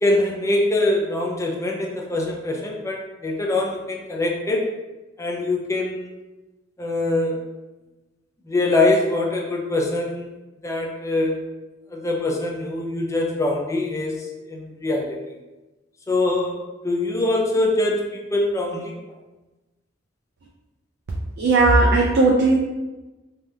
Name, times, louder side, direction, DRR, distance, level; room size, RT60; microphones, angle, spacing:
voice 1, 0.0-4.7 5.2-6.1 6.8-7.5 8.5-10.3 10.6-11.5 11.9-15.2 16.1-18.9, left 2 dB, 15° left, 0 dB, 0.4 m, -23 dB
voice 2, 21.4-22.5, right 3 dB, 60° right, -2 dB, 0.4 m, -16 dB
3.3 x 2.4 x 2.7 m, 1.1 s
head